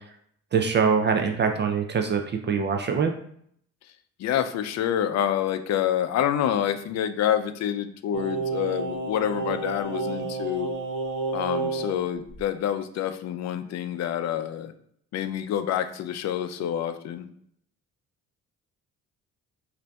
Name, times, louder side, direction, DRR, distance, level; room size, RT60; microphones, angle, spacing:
voice 1, 0.5-2.2 2.5-3.1, right 6 dB, 35° right, 4 dB, 0.4 m, -23 dB
voice 2, 4.2-10.7 11.3-14.7 15.1-17.2, left 10 dB, 60° left, 9 dB, 0.5 m, -27 dB
Singing, 8.1-12.0 12.3-12.4, right 3 dB, 80° right, 0.8 m, -30 dB
5.0 x 2.6 x 2.3 m, 0.67 s
cardioid pair, 90°, 30 cm